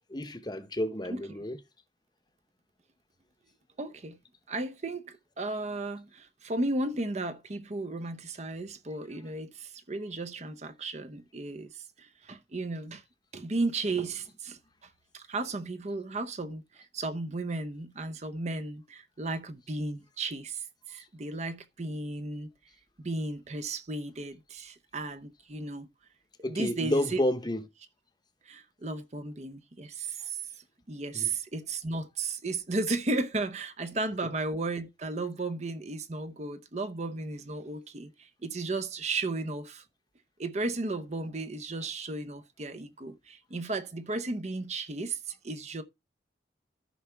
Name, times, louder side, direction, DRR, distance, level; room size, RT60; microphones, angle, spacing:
voice 1, 0.1-1.6 26.4-27.6 31.1-31.3, left 1 dB, 25° left, 0.9 m, -30 dB
voice 2, 3.8-4.2 4.5-13.0 13.3-14.6 15.1-22.5 23.0-25.9 26.4-27.2 28.5-30.4 30.9-39.8 40.4-45.8, right 2 dB, 40° right, 0.7 m, -34 dB
13.5 x 5.7 x 3.4 m
head